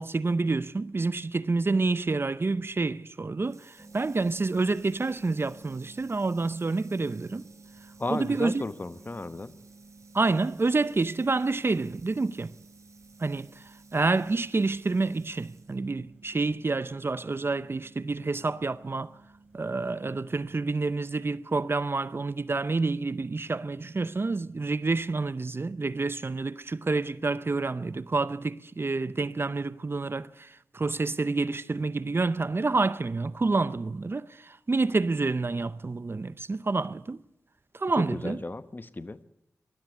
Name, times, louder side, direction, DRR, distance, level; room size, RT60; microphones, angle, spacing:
voice 1, 0.0-7.5 8.1-8.6 10.1-12.6 13.2-13.6 13.9-19.2 19.5-37.2 37.7-38.4, right 3 dB, 40° right, 0.6 m, -28 dB
Water tap faucet / Sink (filling or washing), 3.4-15.9, right 4 dB, 60° right, 4.6 m, -59 dB
sound 1, 3.8-20.7, right 3 dB, 15° right, 2.9 m, -54 dB
voice 2, 8.0-9.5 38.0-39.2, left 2 dB, 35° left, 1.0 m, -34 dB
20.5 x 13.5 x 9.6 m
cardioid pair, 45°, 6 cm